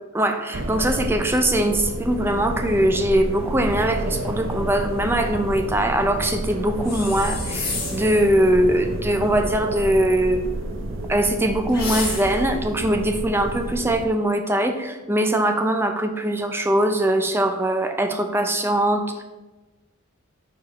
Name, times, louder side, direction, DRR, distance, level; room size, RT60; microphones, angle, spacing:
voice 1, 0.1-10.4 11.1-19.2, right 1 dB, 10° right, 5 dB, 0.4 m, -21 dB
sound 1, 0.5-14.1, right 1 dB, 65° right, 0.6 m, -30 dB
sound 2, 6.8-8.2 11.7-12.5, left 4 dB, 45° left, 1.7 m, -30 dB
4.7 x 4.7 x 5.2 m, 1.2 s
head